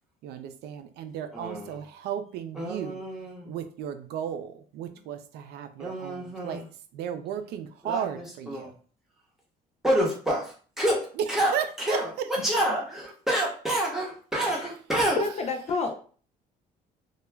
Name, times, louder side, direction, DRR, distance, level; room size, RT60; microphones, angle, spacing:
voice 1, 0.2-3.0 3.4-8.8 11.5-12.3, right 9 dB, 75° right, 0.4 m, -35 dB
voice 2, 1.3-1.8 2.5-3.6 5.8-6.6 7.8-8.7 9.8-15.2, right 1 dB, ahead, 0.9 m, -28 dB
voice 3, 15.2-15.9, left 4 dB, 40° left, 0.4 m, -29 dB
2.2 x 2.1 x 3.3 m
cardioid pair, 110°, 17 cm